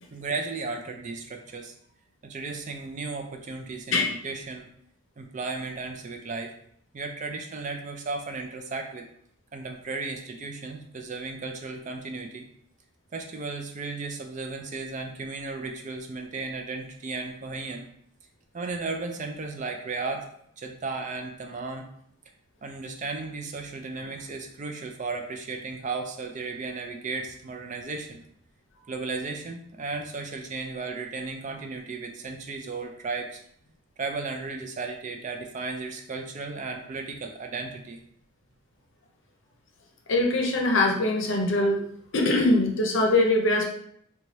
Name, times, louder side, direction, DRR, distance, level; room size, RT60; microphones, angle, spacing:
voice 1, 0.1-1.7 2.2-4.7 5.2-6.5 6.9-9.1 9.5-12.5 13.1-17.9 18.5-20.3 20.6-21.9 22.6-28.2 28.9-33.4 34.0-38.0, right 3 dB, 35° right, 3 dB, 0.4 m, -35 dB
voice 2, 40.1-41.8 42.1-43.7, left 2 dB, 60° left, 1 dB, 0.7 m, -22 dB
3.1 x 2.3 x 4.0 m, 0.67 s
head